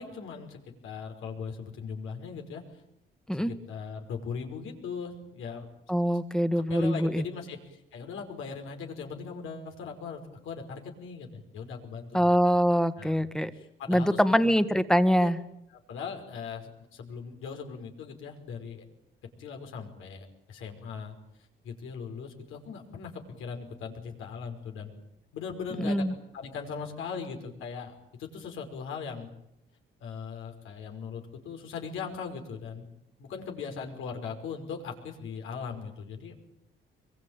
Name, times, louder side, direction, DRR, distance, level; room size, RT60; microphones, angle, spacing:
voice 1, 0.0-2.8 3.3-5.7 6.7-12.3 13.0-13.2 13.5-14.6 15.2-15.3 15.7-18.8 19.4-21.2 21.6-24.9 25.3-26.0 26.3-29.3 30.0-32.9 33.2-36.4, left 6 dB, 85° left, 3 dB, 5.5 m, -39 dB
voice 2, 5.9-7.2 12.1-13.5 13.9-15.4 25.8-26.1, equal, 5° left, 12 dB, 1.8 m, -24 dB
24.5 x 23.0 x 9.0 m, 0.80 s
cardioid pair, 90°, 20 cm